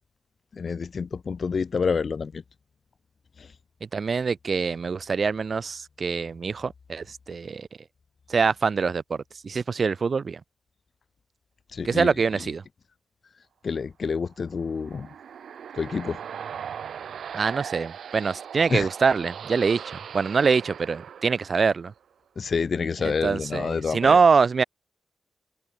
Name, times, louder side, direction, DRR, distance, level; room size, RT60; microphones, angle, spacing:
voice 1, 0.5-2.4 11.7-12.1 13.6-15.1 15.7-16.2 18.7-18.9 22.4-24.2, left 5 dB, 50° left, 0.6 m, -28 dB
voice 2, 3.9-7.7 8.3-10.4 11.8-12.6 17.3-19.8 20.1-21.9 23.0-24.6, right 5 dB, 50° right, 0.3 m, -24 dB
sound 1, 14.4-22.0, right 8 dB, 75° right, 0.7 m, -39 dB
open air
cardioid pair, 80°, 0 cm